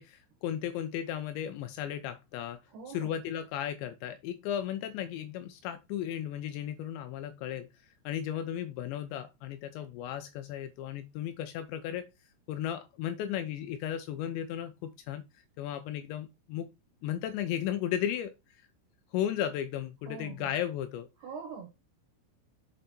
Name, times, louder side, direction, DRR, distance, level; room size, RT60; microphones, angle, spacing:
voice 1, 0.0-2.6 2.9-12.1 12.5-15.2 15.6-16.7 17.0-18.3 19.1-21.1, left 10 dB, 85° left, 2.6 m, -35 dB
voice 2, 2.7-3.1 20.0-20.5 21.2-21.7, right 5 dB, 65° right, 2.9 m, -43 dB
7.6 x 5.3 x 4.3 m
omnidirectional pair, 5.8 m